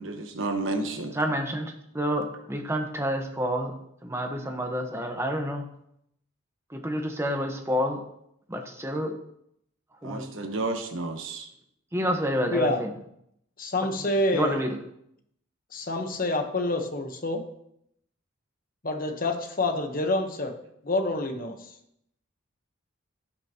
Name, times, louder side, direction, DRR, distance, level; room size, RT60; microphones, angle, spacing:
voice 1, 0.0-1.1 10.0-11.5, right 2 dB, 65° right, 5 dB, 1.2 m, -31 dB
voice 2, 1.1-3.7 4.0-5.7 6.7-8.0 8.5-9.2 10.0-10.3 11.9-12.9 14.3-14.8, equal, 10° right, 4 dB, 1.1 m, -29 dB
voice 3, 12.5-12.8 13.6-14.6 15.7-17.5 18.8-20.5 20.8-21.6, left 2 dB, 40° left, 5 dB, 1.1 m, -27 dB
16.5 x 6.0 x 3.0 m, 0.74 s
head